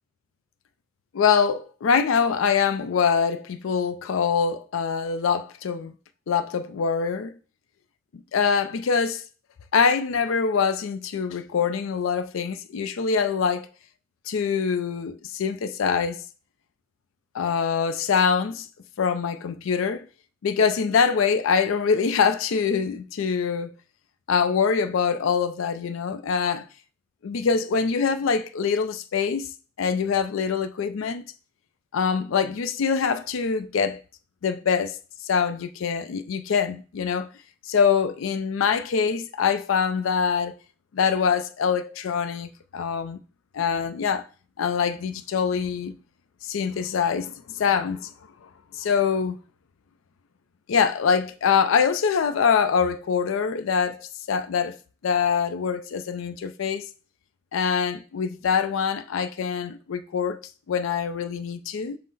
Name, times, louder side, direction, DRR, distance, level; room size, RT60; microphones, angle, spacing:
voice 1, 1.1-5.9 6.3-7.4 8.1-9.2 9.7-13.7 14.3-16.2 17.3-18.7 19.0-20.1 20.4-23.7 24.3-26.7 27.2-31.2 31.9-34.0 34.4-35.0 35.2-37.3 37.7-40.5 40.9-43.2 43.5-44.3 44.6-45.9 46.4-48.1 48.4-49.4 50.7-54.8 55.0-56.9 57.5-62.0, left 6 dB, 85° left, 0.4 m, -24 dB
5.5 x 2.0 x 4.0 m
head